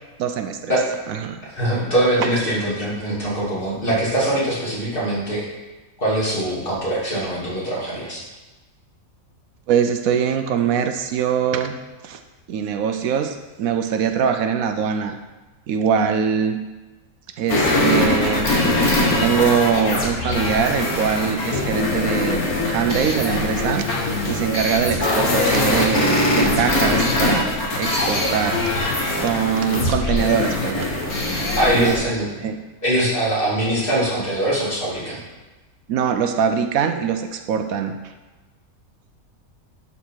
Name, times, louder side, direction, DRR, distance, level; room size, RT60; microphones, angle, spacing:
voice 1, 0.2-0.8 1.1-1.4 2.2-2.6 9.7-11.8 12.0-12.2 12.5-15.2 15.7-16.6 17.4-18.5 18.9-23.9 24.3-27.5 27.8-28.6 29.1-30.9 31.8-32.0 32.4-32.6 35.9-37.9, right 7 dB, 75° right, 7 dB, 1.0 m, -22 dB
voice 2, 1.5-5.5 6.0-8.2 31.6-32.3 32.8-35.2, right 1 dB, 35° left, -6 dB, 2.7 m, -22 dB
sound 1, 17.5-32.0, left 2 dB, 90° left, 2.0 m, -21 dB
11.5 x 4.2 x 4.5 m, 1.2 s
omnidirectional pair, 1.5 m